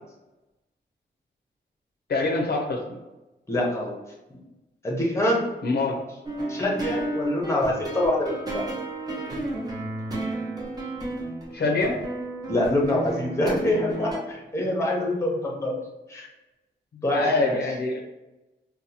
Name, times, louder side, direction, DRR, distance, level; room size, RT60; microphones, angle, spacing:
voice 1, 2.1-3.0 5.6-6.0 11.5-11.9 14.6-14.9 17.1-18.0, left 3 dB, 55° left, 0 dB, 0.5 m, -25 dB
voice 2, 3.5-3.9 4.8-5.4 6.5-8.6 12.5-15.7 16.1-16.3 17.0-17.6, left 1 dB, 15° left, -2 dB, 0.7 m, -25 dB
sound 1, 6.2-14.2, right 2 dB, 20° right, 0.7 m, -32 dB
2.7 x 2.1 x 4.0 m, 1.0 s
wide cardioid pair, 170°, 19 cm